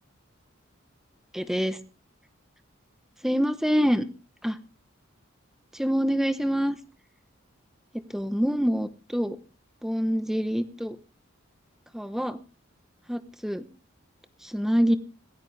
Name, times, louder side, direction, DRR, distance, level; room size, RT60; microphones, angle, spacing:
voice 1, 1.3-1.8 3.2-4.1 4.4-4.6 5.7-6.8 8.1-9.4 9.8-11.0 11.9-12.4 13.1-13.6 14.4-15.0, equal, ahead, 11 dB, 0.9 m, -25 dB
26.0 x 9.0 x 3.4 m, 0.31 s
head